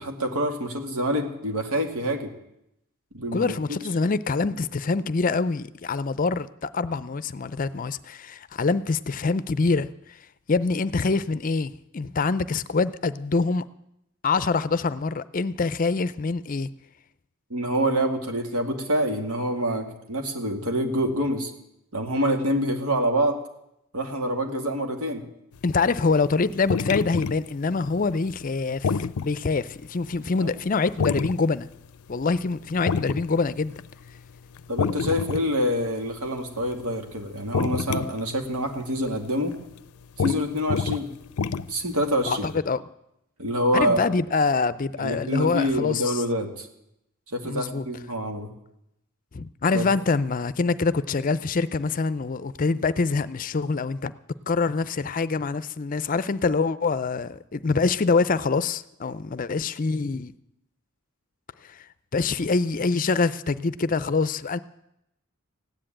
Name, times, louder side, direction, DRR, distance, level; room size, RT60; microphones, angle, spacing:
voice 1, 0.0-2.3 3.1-3.6 17.5-21.5 21.9-23.3 23.9-25.2 30.4-30.5 34.7-39.5 40.2-41.1 41.7-42.5 43.4-44.0 45.0-46.7 47.3-48.5 49.7-49.9, equal, 90° right, 4 dB, 2.3 m, -26 dB
voice 2, 3.3-9.9 10.5-13.6 14.2-16.7 25.6-31.7 32.1-33.8 42.3-42.8 43.7-46.2 47.4-47.9 49.3-54.1 54.5-60.3 61.7-61.8 62.1-64.6, left 4 dB, 40° left, 16 dB, 0.5 m, -25 dB
sound 1, 25.7-29.4 29.8-29.9 31.0-31.4 31.8-31.9 32.1-32.4 32.8-34.2 34.5-35.5 35.8-36.9 37.2-38.3 38.7-38.8 39.1-39.2 39.7-39.8 40.2-40.4 40.7-42.0 42.5-42.6, left 5 dB, 90° left, 0.5 m, -27 dB
16.0 x 10.0 x 8.8 m, 0.82 s
head